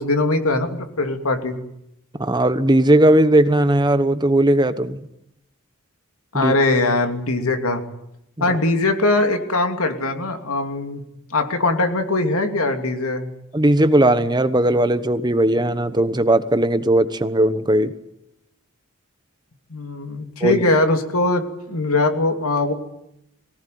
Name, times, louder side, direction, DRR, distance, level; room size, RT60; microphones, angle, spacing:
voice 1, 0.0-1.6 6.3-7.8 8.4-11.0 11.3-13.3 19.7-22.7, left 2 dB, 80° left, 5 dB, 2.9 m, -21 dB
voice 2, 2.2-5.0 6.3-6.5 8.4-8.6 13.5-17.9 20.4-20.6, right 1 dB, 20° right, 11 dB, 1.2 m, -17 dB
23.0 x 18.5 x 9.5 m, 0.84 s
head